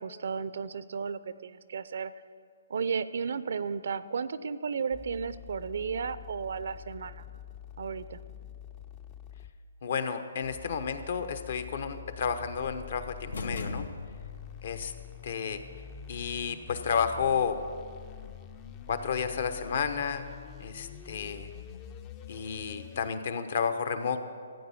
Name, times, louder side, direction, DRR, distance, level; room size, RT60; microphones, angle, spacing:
voice 1, 0.0-2.1 2.7-7.2 7.8-8.2, right 6 dB, 65° right, 15 dB, 0.5 m, -34 dB
sound 1, 4.9-9.6 10.4-23.1, left 9 dB, 25° left, 0.5 m, -46 dB
voice 2, 9.8-13.8 14.6-14.9 15.2-15.6 16.1-17.6 18.9-20.3 20.6-21.5 22.3-24.3, left 6 dB, 55° left, 9 dB, 1.0 m, -31 dB
sound 2, 13.3-14.6, left 3 dB, 85° left, 0.9 m, -37 dB
14.5 x 8.8 x 7.0 m, 2.1 s
hypercardioid pair, 155°, 0 cm